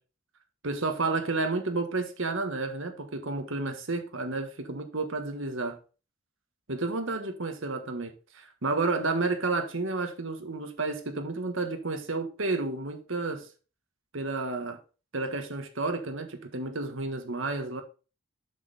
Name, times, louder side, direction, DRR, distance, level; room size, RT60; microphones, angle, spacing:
voice 1, 0.6-5.8 6.7-13.5 14.1-14.8 15.1-17.8, right 3 dB, 65° right, 1.4 m, -31 dB
7.1 x 6.3 x 4.1 m
head